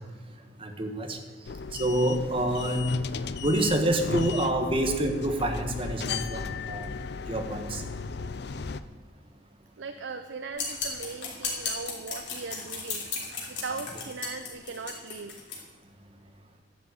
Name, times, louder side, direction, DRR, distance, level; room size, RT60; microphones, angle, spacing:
voice 1, 0.6-1.2 1.7-3.0 3.4-6.9 7.3-7.8, right 1 dB, 30° right, 5 dB, 1.3 m, -27 dB
sound 1, 1.5-8.8, left 5 dB, 60° left, 0.5 m, -35 dB
voice 2, 9.8-13.1 13.5-15.4, right 4 dB, 80° right, 8 dB, 0.6 m, -39 dB
sound 2, 10.5-15.6, left 4 dB, 85° left, 3.1 m, -35 dB
11.0 x 7.6 x 8.4 m, 1.5 s
head